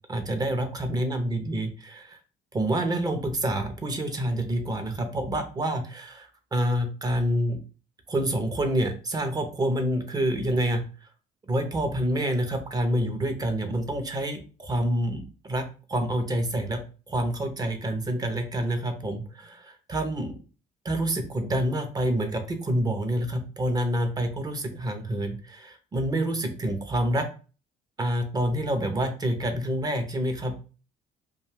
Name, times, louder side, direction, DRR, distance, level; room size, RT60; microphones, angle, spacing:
voice 1, 0.1-2.2 2.5-7.6 8.1-10.8 11.4-16.8 17.1-20.4 20.8-27.3 28.0-30.5, right 1 dB, 25° right, 6 dB, 0.5 m, -27 dB
2.5 x 2.2 x 3.2 m, 0.36 s
cardioid pair, 110°, 17 cm